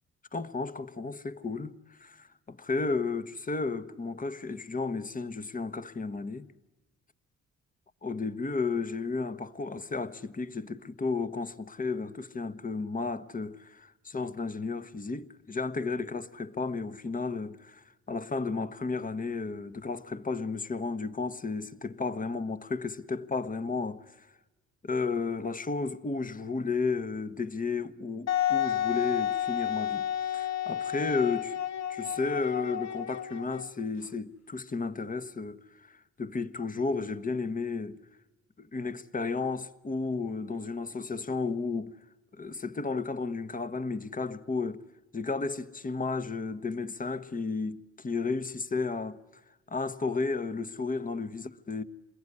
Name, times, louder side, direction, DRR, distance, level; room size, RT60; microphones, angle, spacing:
voice 1, 0.3-6.5 8.0-24.0 24.8-31.5 32.0-38.0 38.6-41.9 42.3-44.8 45.1-49.2 49.7-51.8, left 4 dB, 25° left, 1.3 m, -33 dB
Wind instrument woodwind instrument, 28.3-33.9, left 10 dB, 60° left, 1.4 m, -31 dB
28.0 x 21.0 x 9.8 m
cardioid pair, 90°, 30 cm